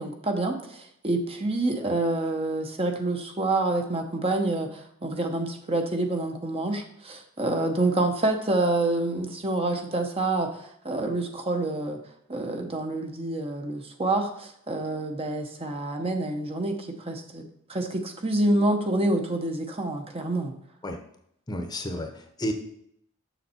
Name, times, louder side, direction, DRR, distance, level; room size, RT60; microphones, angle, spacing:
voice 1, 0.0-12.0 12.3-20.5, right 2 dB, 30° right, 5 dB, 0.8 m, -27 dB
voice 2, 21.5-22.5, equal, 20° left, 4 dB, 0.8 m, -31 dB
7.1 x 6.4 x 4.3 m, 0.70 s
head